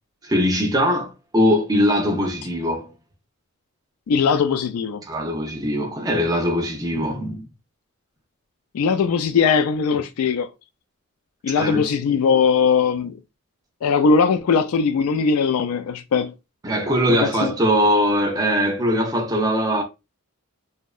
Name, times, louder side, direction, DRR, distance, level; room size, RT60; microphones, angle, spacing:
voice 1, 0.2-2.9 5.0-7.5 11.6-11.9 16.6-19.8, equal, 15° right, 0.4 m, -21 dB
voice 2, 4.1-5.0 8.7-10.5 11.4-13.2 13.8-16.3 17.1-17.5, left 5 dB, 85° left, 0.3 m, -20 dB
2.7 x 2.1 x 2.2 m
head